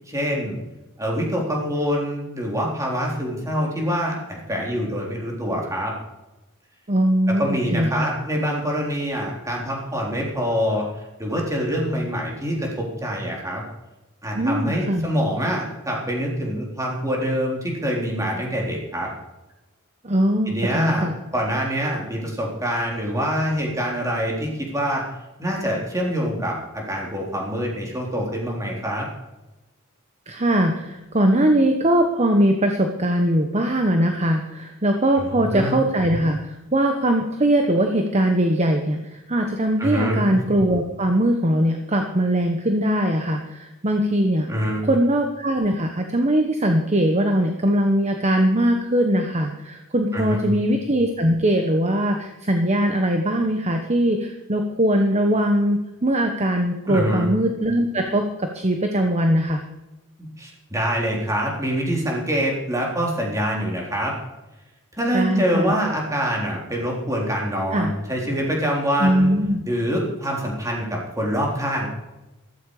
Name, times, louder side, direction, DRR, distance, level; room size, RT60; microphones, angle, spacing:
voice 1, 0.1-0.6 1.0-6.0 7.4-10.9 11.2-13.6 14.2-19.1 20.5-25.0 25.4-29.1 35.2-35.8 39.8-40.4 44.5-44.8 50.1-50.6 56.9-57.3 60.2-64.1 64.9-69.3 69.6-71.9, equal, 15° right, -2 dB, 3.9 m, -25 dB
voice 2, 6.9-8.1 14.3-15.1 20.0-21.1 30.3-44.5 44.9-59.6 65.1-65.7 67.7-67.9 69.0-69.6, right 1 dB, 30° right, 4 dB, 1.1 m, -21 dB
14.5 x 13.5 x 4.9 m, 1.0 s
head